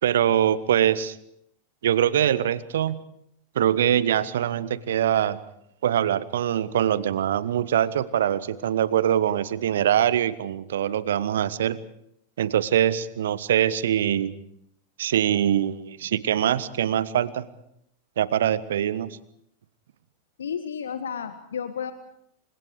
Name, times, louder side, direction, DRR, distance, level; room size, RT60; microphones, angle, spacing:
voice 1, 0.0-1.2 1.8-3.0 3.5-5.4 5.8-11.8 12.4-14.3 15.0-17.4 18.2-19.2, right 10 dB, 60° right, 18 dB, 1.3 m, -23 dB
voice 2, 20.4-21.9, left 7 dB, 65° left, 10 dB, 1.6 m, -32 dB
29.5 x 25.5 x 4.9 m, 0.72 s
figure-of-eight pair, 90°, 0 cm